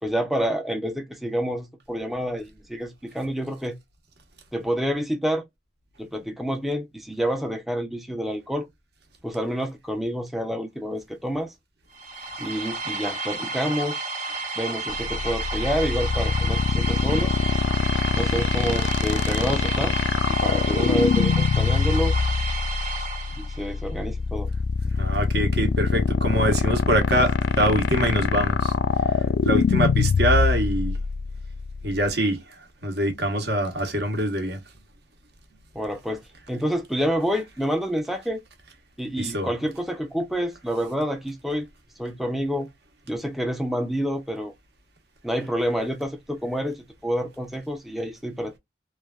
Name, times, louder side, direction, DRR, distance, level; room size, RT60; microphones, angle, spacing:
voice 1, 0.0-3.8 4.5-5.4 6.0-8.7 9.2-11.5 12.4-14.0 14.6-17.3 18.1-20.0 20.3-22.2 23.4-24.5 35.7-36.2 36.5-38.4 39.0-41.7 42.0-42.7 43.1-44.5 45.2-48.6, equal, ahead, 0.3 m, -28 dB
sound 1, 11.9-23.8, right 3 dB, 45° right, 1.0 m, -31 dB
sound 2, 14.9-32.1, left 5 dB, 80° left, 0.3 m, -23 dB
voice 2, 25.0-28.7 29.4-31.0 31.8-32.4 32.8-34.6 39.2-39.5, right 1 dB, 65° right, 1.0 m, -24 dB
3.2 x 2.3 x 2.2 m
head